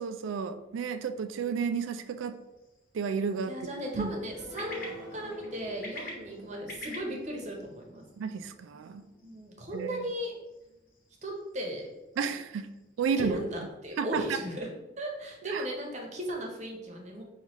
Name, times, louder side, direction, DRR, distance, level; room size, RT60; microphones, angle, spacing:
voice 1, 0.0-2.4 2.9-3.5 3.9-4.1 8.2-9.0 9.7-10.1 12.2-12.7 13.0-13.4 14.0-14.2 15.4-15.6, right 6 dB, 90° right, 11 dB, 0.3 m, -32 dB
sound 1, 1.7-13.4, left 1 dB, 50° left, 1.0 m, -50 dB
voice 2, 3.5-8.0 9.2-10.3 11.2-11.9 13.2-14.7 15.0-17.2, equal, 35° right, 1 dB, 0.7 m, -36 dB
sound 2, 3.8-10.8 11.2-11.3 11.7-11.8, equal, 65° left, 1.1 m, -50 dB
5.6 x 2.3 x 3.0 m, 1.0 s
head